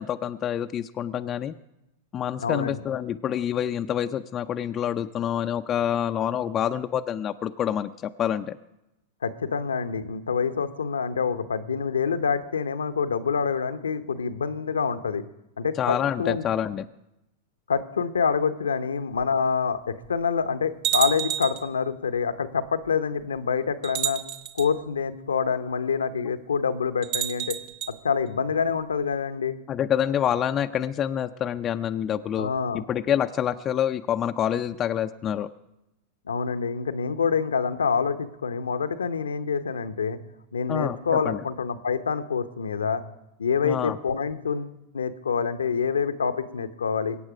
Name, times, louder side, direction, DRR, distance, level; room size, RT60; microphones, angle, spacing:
voice 1, 0.0-1.5 2.1-7.9 8.2-8.5 15.8-16.9 29.7-35.5 40.7-41.0 41.2-41.4 43.6-44.0, left 9 dB, 30° left, 7 dB, 0.5 m, -27 dB
voice 2, 2.4-2.8 9.2-15.2 15.6-16.5 17.7-24.2 24.5-27.6 27.9-29.5 32.4-32.8 36.3-40.2 40.5-43.0 43.4-47.2, left 6 dB, 85° left, 10 dB, 0.8 m, -26 dB
sound 1, 19.2-19.3 20.0-20.1 20.8-21.7 22.8-22.9 23.8-24.7 27.0-27.9, right 11 dB, 55° right, 1.3 m, -29 dB
22.5 x 8.7 x 4.9 m, 0.91 s
hypercardioid pair, 100°, 0 cm